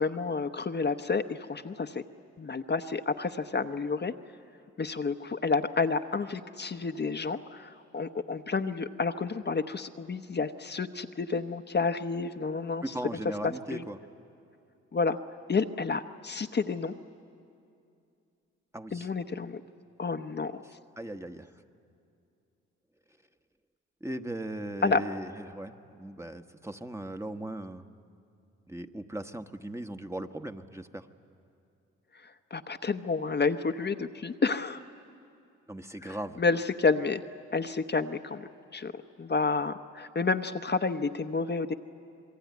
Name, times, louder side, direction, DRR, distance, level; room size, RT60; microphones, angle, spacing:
voice 1, 0.0-2.0 2.4-4.1 4.8-12.9 13.4-13.8 14.9-15.2 15.5-16.9 18.9-19.6 20.0-20.5 24.8-25.0 32.2-34.8 36.0-37.2 37.5-38.9 39.2-41.7, left 4 dB, 35° left, 7 dB, 0.9 m, -30 dB
voice 2, 12.8-14.0 18.7-19.1 20.6-21.5 24.0-27.9 28.7-31.1 35.7-36.4, right 1 dB, 10° right, 7 dB, 1.2 m, -38 dB
26.5 x 21.5 x 9.4 m, 2.5 s
supercardioid pair, 60°, 30 cm